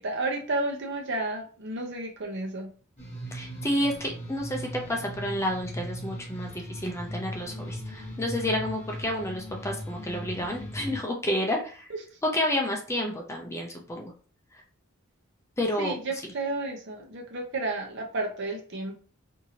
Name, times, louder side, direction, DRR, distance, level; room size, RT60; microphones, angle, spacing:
voice 1, 0.0-2.7 15.8-19.0, right 2 dB, 60° right, 1 dB, 0.8 m, -32 dB
sound 1, 3.0-11.0, equal, 30° left, 1.1 m, -38 dB
voice 2, 3.3-11.8 12.3-14.1 15.6-16.0, left 1 dB, 15° left, 1 dB, 0.5 m, -30 dB
2.7 x 2.7 x 2.8 m, 0.40 s
head